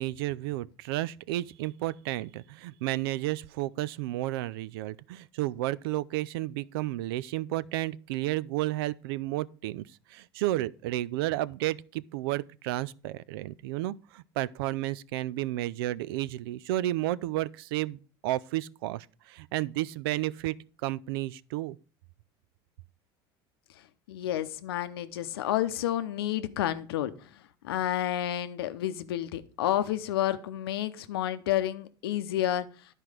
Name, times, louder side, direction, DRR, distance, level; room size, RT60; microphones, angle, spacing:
voice 1, 0.0-9.8 10.1-20.6 20.8-21.8, right 16 dB, 80° right, 0.4 m, -32 dB
voice 2, 24.1-32.7, left 12 dB, 90° left, 0.7 m, -30 dB
11.0 x 4.6 x 4.9 m
supercardioid pair, 100°, 12 cm